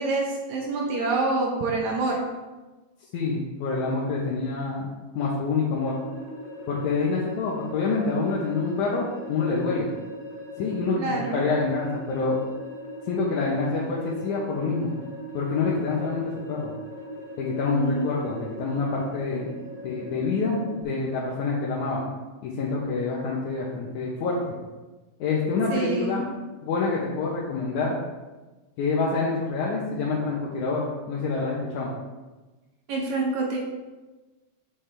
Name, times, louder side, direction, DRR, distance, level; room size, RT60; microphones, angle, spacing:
voice 1, 0.0-2.2 11.0-11.4 17.7-18.0 25.7-26.2 32.9-33.6, right 3 dB, 75° right, -1 dB, 2.3 m, -26 dB
voice 2, 3.1-5.9 6.7-9.9 10.6-12.4 13.1-14.9 15.3-16.7 17.4-19.5 19.8-22.0 22.4-24.6 25.2-26.2 26.6-27.9 28.8-31.9, left 4 dB, 75° left, -5 dB, 2.4 m, -27 dB
sound 1, 5.8-20.8, right 1 dB, 25° left, 2.4 m, -40 dB
8.3 x 7.5 x 3.4 m, 1.2 s
omnidirectional pair, 3.5 m